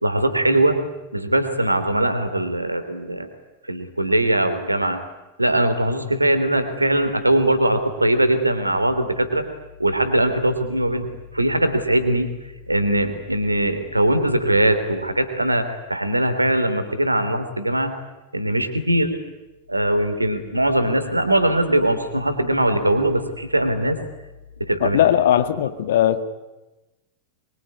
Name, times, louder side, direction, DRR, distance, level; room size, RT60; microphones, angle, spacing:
voice 1, 0.0-0.8 1.1-3.3 3.7-5.0 5.4-9.4 9.8-12.3 12.7-17.9 18.3-19.2 19.7-24.0 24.6-25.0, right 1 dB, 85° right, 9 dB, 3.0 m, -21 dB
voice 2, 24.8-26.2, left 11 dB, 60° left, 11 dB, 1.8 m, -18 dB
24.5 x 23.0 x 9.9 m, 1.0 s
figure-of-eight pair, 90°, 0 cm